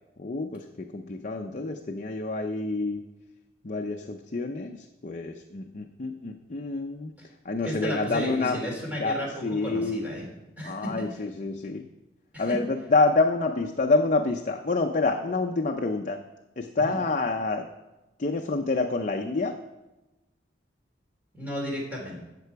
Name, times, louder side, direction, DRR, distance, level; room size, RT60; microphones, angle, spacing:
voice 1, 0.2-3.0 3.6-4.8 5.0-7.1 7.5-8.6 9.0-9.2 9.4-10.0 10.6-11.8 12.4-16.2 16.6-17.7 18.2-19.6, left 3 dB, 45° left, 4 dB, 0.6 m, -27 dB
voice 2, 7.6-10.3 10.6-10.9 12.3-12.6 16.8-17.0 21.3-22.2, equal, 10° right, -3 dB, 3.5 m, -33 dB
15.0 x 6.8 x 4.6 m, 1.0 s
head